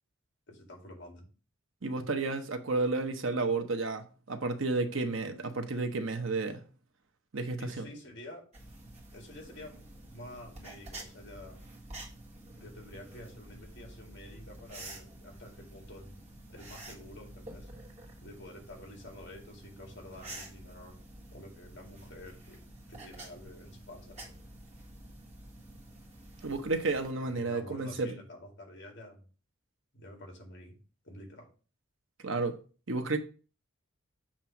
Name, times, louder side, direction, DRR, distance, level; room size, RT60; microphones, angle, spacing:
voice 1, 0.5-1.3 7.6-8.5 9.1-11.6 12.5-16.2 16.5-17.7 18.2-21.0 21.3-22.6 22.9-24.3 27.3-29.2 29.9-30.8 31.0-31.5, left 1 dB, 55° left, 2.3 m, -49 dB
voice 2, 1.8-6.6 7.3-7.8 26.4-28.1 32.2-32.6 32.9-33.2, right 3 dB, 65° right, 0.9 m, -32 dB
sound 1, 8.5-27.1, right 1 dB, 35° right, 1.6 m, -49 dB
7.4 x 3.0 x 5.8 m
head